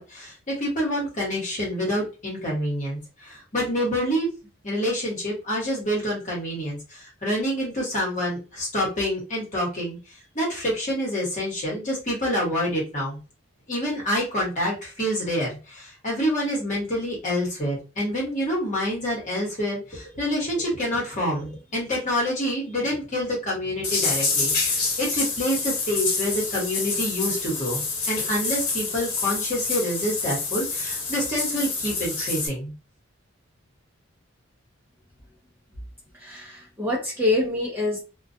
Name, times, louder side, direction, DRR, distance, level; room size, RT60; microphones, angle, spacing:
voice 1, 0.0-4.3 4.6-13.2 13.7-32.7, equal, 35° left, -4 dB, 1.1 m, -27 dB
sound 1, 23.8-32.5, left 4 dB, 85° left, 0.9 m, -27 dB
voice 2, 36.1-38.0, left 2 dB, 10° right, -5 dB, 0.5 m, -26 dB
2.3 x 2.2 x 2.6 m, 0.32 s
head